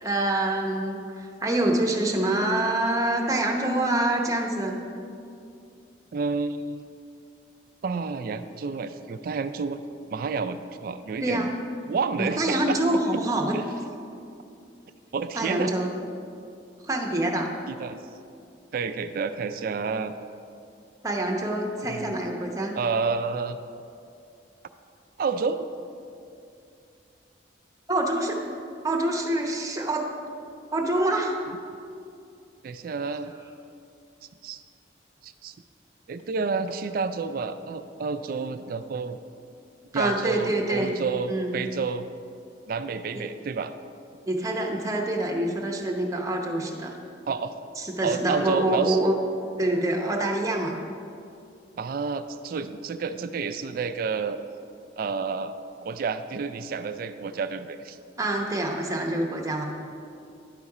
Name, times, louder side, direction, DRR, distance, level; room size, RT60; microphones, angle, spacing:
voice 1, 0.0-4.8 11.2-11.5 12.2-13.5 15.3-15.9 16.8-17.5 21.0-22.7 27.9-28.4 28.8-30.1 30.7-31.4 39.9-41.0 41.3-41.5 43.1-43.2 44.3-46.9 47.8-49.1 49.6-50.8 58.2-59.7, right 1 dB, 15° right, 0 dB, 0.8 m, -26 dB
voice 2, 6.1-6.8 7.8-9.8 10.1-11.5 11.9-12.8 13.1-13.2 13.5-13.6 15.1-15.7 17.7-18.0 18.7-20.1 21.9-22.1 22.7-23.6 25.2-25.7 31.5-31.6 32.6-33.3 34.4-34.6 35.2-35.5 36.1-39.2 39.9-42.1 42.7-43.7 47.3-47.5 48.0-49.0 51.8-54.4 55.0-58.0, right 5 dB, 50° right, 11 dB, 0.3 m, -30 dB
11.5 x 4.1 x 4.8 m, 2.5 s
head